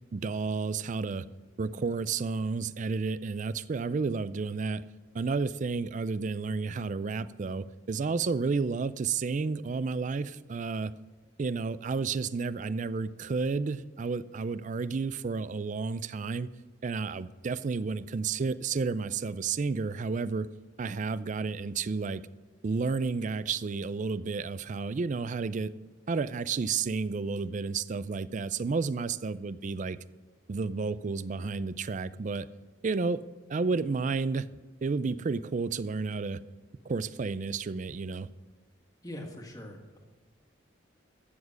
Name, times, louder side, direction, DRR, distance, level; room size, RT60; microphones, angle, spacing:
voice 1, 0.1-1.3 1.6-4.8 5.1-10.9 11.4-16.5 16.8-20.5 20.8-22.2 22.6-25.7 26.1-30.0 30.5-32.5 32.8-33.2 33.5-34.5 34.8-36.4 36.9-38.3, right 4 dB, 40° right, 16 dB, 0.4 m, -31 dB
voice 2, 39.0-40.0, left 1 dB, 20° left, 2 dB, 1.7 m, -42 dB
14.5 x 7.3 x 6.3 m, 1.3 s
head